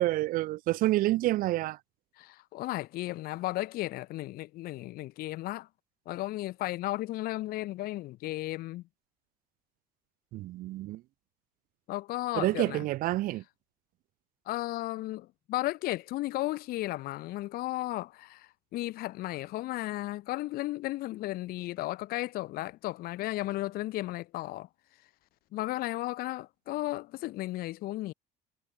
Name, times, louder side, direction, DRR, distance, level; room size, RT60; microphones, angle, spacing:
voice 1, 0.0-1.8 10.3-11.0 12.3-13.4, right 17 dB, 45° right, 0.5 m, -28 dB
voice 2, 2.2-5.7 6.1-8.8 11.9-12.9 14.5-24.7 25.5-28.1, left 17 dB, 45° left, 0.7 m, -34 dB
figure-of-eight pair, 60°, 21 cm